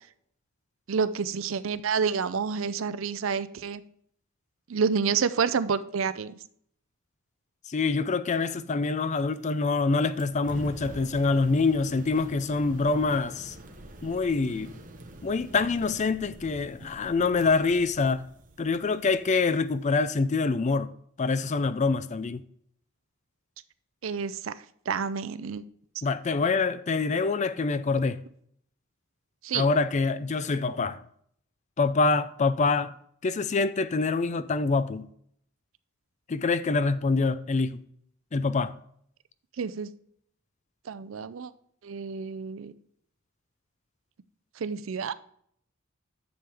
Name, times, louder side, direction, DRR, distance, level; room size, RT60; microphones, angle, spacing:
voice 1, 0.9-3.8 4.7-6.4 24.0-24.5 24.9-25.6 29.4-29.7 39.6-39.9 40.9-41.5 41.8-42.7 44.6-45.1, right 6 dB, 65° right, 0.5 m, -29 dB
voice 2, 7.7-13.5 14.0-14.7 15.2-18.2 18.6-20.9 21.2-22.4 26.0-28.2 29.5-31.0 31.8-32.9 33.2-35.1 36.3-37.8 38.3-38.7, left 4 dB, 35° left, 0.4 m, -25 dB
sound 1, 10.2-20.2, right 1 dB, 40° right, 1.1 m, -46 dB
10.5 x 7.1 x 3.5 m
head